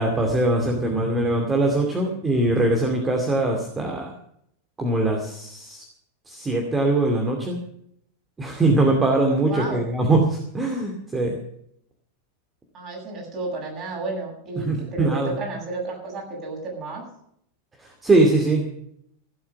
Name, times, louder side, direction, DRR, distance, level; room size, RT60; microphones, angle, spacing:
voice 1, 0.0-4.1 4.8-5.8 6.3-7.6 8.4-11.4 14.6-15.3 18.0-18.6, right 2 dB, 15° right, 2 dB, 2.5 m, -22 dB
voice 2, 9.4-9.8 12.7-17.1, right 3 dB, 35° right, -1 dB, 7.8 m, -32 dB
16.0 x 8.7 x 7.7 m, 0.71 s
figure-of-eight pair, 90°, 0 cm